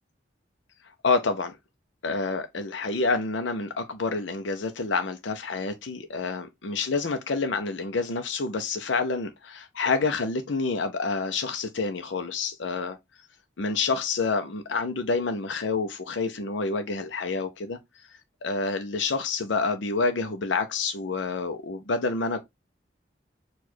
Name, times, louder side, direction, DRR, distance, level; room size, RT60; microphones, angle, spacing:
voice 1, 1.0-1.5 2.0-13.0 13.6-18.1 18.4-22.4, left 4 dB, 90° left, 0.7 m, -28 dB
4.7 x 2.5 x 4.2 m
head